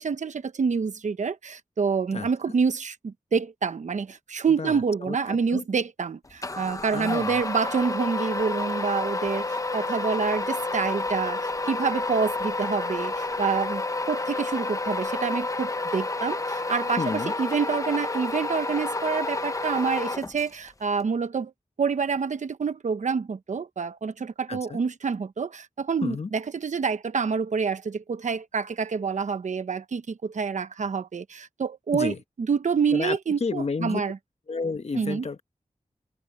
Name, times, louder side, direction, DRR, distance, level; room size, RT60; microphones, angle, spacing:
voice 1, 0.0-21.5 21.8-32.1 32.5-34.2 34.9-35.3, right 5 dB, 85° right, 1.0 m, -27 dB
voice 2, 4.6-5.6 6.9-7.4 17.0-17.3 24.5-24.8 26.0-26.3 31.9-32.2 32.9-34.0 34.5-35.4, left 4 dB, 60° left, 1.3 m, -31 dB
sound 1, 6.4-20.7, left 2 dB, 25° left, 0.9 m, -30 dB
wide cardioid pair, 70°, 12 cm